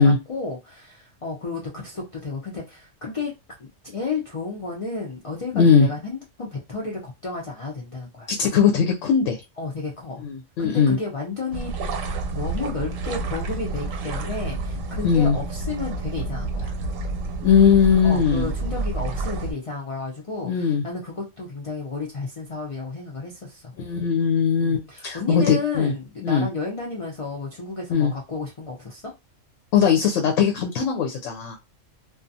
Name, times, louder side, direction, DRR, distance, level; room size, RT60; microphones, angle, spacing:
voice 1, 0.0-3.3 3.6-8.3 9.6-10.2 10.6-11.7 12.3-16.8 18.0-23.7 24.6-29.1, left 4 dB, 55° left, 0.3 m, -32 dB
voice 2, 5.5-5.9 8.4-9.4 10.2-11.0 15.0-15.4 17.4-18.5 20.4-20.8 23.8-25.9 26.2-26.5 27.9-28.1 29.7-31.6, left 6 dB, 75° left, 0.9 m, -19 dB
sound 1, 11.5-19.5, right 3 dB, 80° right, 1.0 m, -29 dB
2.4 x 2.3 x 2.6 m
omnidirectional pair, 1.3 m